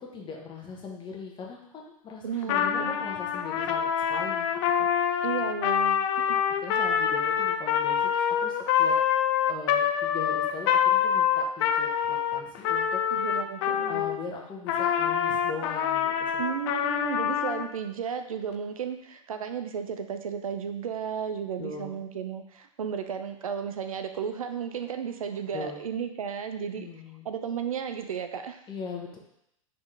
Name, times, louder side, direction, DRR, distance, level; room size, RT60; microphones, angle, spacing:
voice 1, 0.0-4.5 4.8-5.2 6.6-8.9 9.4-13.0 13.9-16.6 21.6-22.0 25.5-25.8 26.6-27.3 28.7-29.2, left 4 dB, 25° left, -1 dB, 1.0 m, -40 dB
voice 2, 2.2-3.1 5.2-6.4 13.1-14.0 16.4-26.9 27.2-28.6, right 7 dB, 90° right, 8 dB, 0.5 m, -34 dB
Trumpet, 2.4-14.2 14.7-17.7, left 8 dB, 55° left, 0.4 m, -26 dB
4.0 x 3.8 x 3.2 m, 0.77 s
hypercardioid pair, 105°, 18 cm